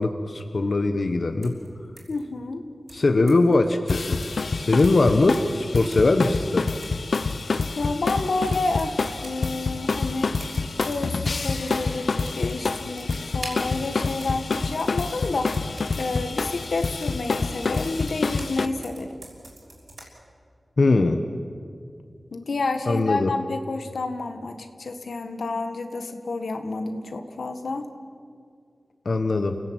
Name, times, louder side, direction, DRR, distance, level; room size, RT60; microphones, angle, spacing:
voice 1, 0.0-1.6 2.9-4.2 4.5-6.7 20.8-21.2 22.9-23.3 29.0-29.6, left 2 dB, 60° left, 7 dB, 1.2 m, -21 dB
sound 1, 1.4-1.7 2.0-2.2 2.9-3.5 3.9-4.5 4.8-5.0 5.3-5.6 5.9-7.0 7.3-9.5 10.3-11.1 11.3-18.6 18.8-20.0, right 2 dB, 60° right, 6.2 m, -45 dB
voice 2, 2.1-2.6 7.8-9.0 9.2-10.3 10.8-19.1 22.3-27.9, left 3 dB, 90° left, 7 dB, 1.7 m, -29 dB
sound 2, 3.9-18.7, left 4 dB, 75° left, 1.0 m, -27 dB
28.5 x 16.5 x 8.9 m, 2.2 s
wide cardioid pair, 95°, 0 cm